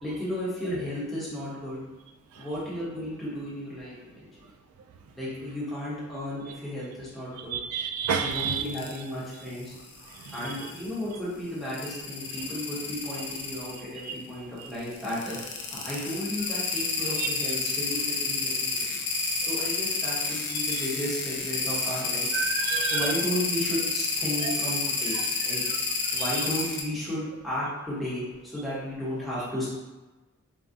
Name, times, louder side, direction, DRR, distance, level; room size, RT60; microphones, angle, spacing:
voice 1, 0.0-1.8 2.3-4.3 5.1-7.6 8.2-9.7 10.3-19.0 19.5-22.3 22.9-25.6 26.1-29.7, left 1 dB, ahead, -10 dB, 1.0 m, -34 dB
voice 2, 7.5-8.6 10.3-10.4 22.3-23.1 24.4-24.5, right 6 dB, 90° right, 6 dB, 0.3 m, -28 dB
sound 1, 8.3-9.0 9.6-10.9 11.7-13.8 14.9-26.8, left 4 dB, 55° left, 0.5 m, -30 dB
3.4 x 2.3 x 2.6 m, 1.2 s
head